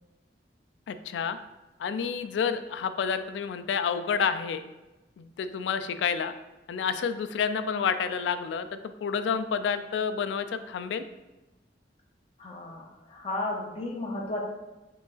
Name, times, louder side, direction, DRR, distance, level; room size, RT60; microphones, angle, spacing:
voice 1, 0.9-1.4 1.8-4.6 5.2-6.3 6.7-11.0, left 6 dB, 85° left, 10 dB, 0.3 m, -29 dB
voice 2, 12.4-14.4, left 2 dB, 35° left, -2 dB, 0.6 m, -34 dB
4.7 x 3.8 x 2.4 m, 1.1 s
head